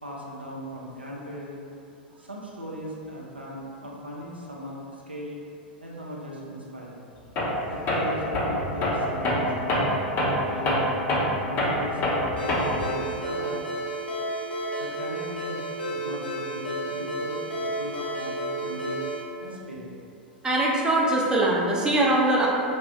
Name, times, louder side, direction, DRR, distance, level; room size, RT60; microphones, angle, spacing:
voice 1, 0.0-1.6 2.2-4.8 5.1-5.4 5.8-7.0 7.7-9.9 10.4-10.9 11.4-13.6 14.8-19.1 19.4-19.9, equal, 85° right, -4 dB, 0.4 m, -38 dB
Tools, 7.4-7.6 7.9-12.9, left 1 dB, 35° left, 0.6 m, -25 dB
Ringtone, 12.4-19.2, right 1 dB, 75° left, 0.6 m, -32 dB
voice 2, 20.4-22.5, right 1 dB, 15° right, -4 dB, 0.5 m, -22 dB
2.5 x 2.0 x 3.5 m, 2.5 s
figure-of-eight pair, 90°, 5 cm